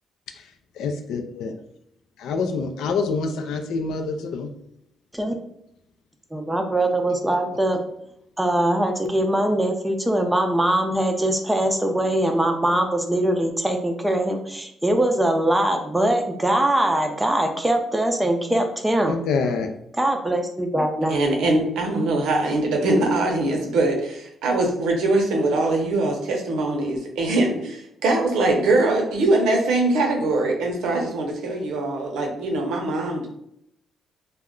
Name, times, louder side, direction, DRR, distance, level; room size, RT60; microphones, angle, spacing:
voice 1, 0.8-1.5 2.2-4.5 7.1-7.2 19.1-19.7, left 4 dB, 90° left, 6 dB, 0.4 m, -26 dB
voice 2, 6.3-7.8 8.4-19.2 20.0-21.2, right 1 dB, 10° right, 4 dB, 0.4 m, -22 dB
voice 3, 21.1-33.3, right 2 dB, 90° right, 2 dB, 0.6 m, -22 dB
2.2 x 2.1 x 3.6 m, 0.75 s
cardioid pair, 120°, 0 cm